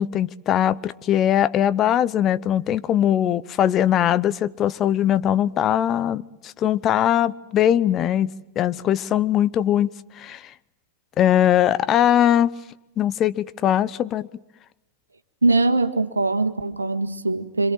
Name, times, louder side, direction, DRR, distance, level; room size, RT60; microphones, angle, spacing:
voice 1, 0.0-8.3 8.6-9.9 10.2-10.5 11.2-12.5 13.0-14.3, left 10 dB, 30° left, 0.9 m, -20 dB
voice 2, 15.4-17.7, right 3 dB, 80° right, 1.7 m, -21 dB
27.0 x 26.5 x 7.6 m
figure-of-eight pair, 90°, 0 cm